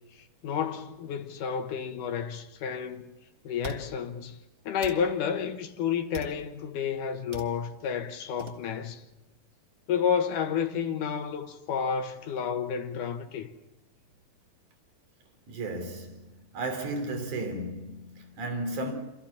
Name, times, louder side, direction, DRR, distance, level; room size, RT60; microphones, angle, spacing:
voice 1, 0.4-3.1 3.4-4.4 4.7-9.0 9.9-13.5, left 7 dB, 90° left, 2.9 m, -30 dB
sound 1, 2.8-2.9 3.6-3.8 4.8-5.0 6.1-6.4 7.3-7.5 8.4-8.6, right 3 dB, 25° right, 1.3 m, -41 dB
voice 2, 15.5-18.9, right 2 dB, 75° right, 4.7 m, -34 dB
27.5 x 15.0 x 7.2 m
omnidirectional pair, 3.5 m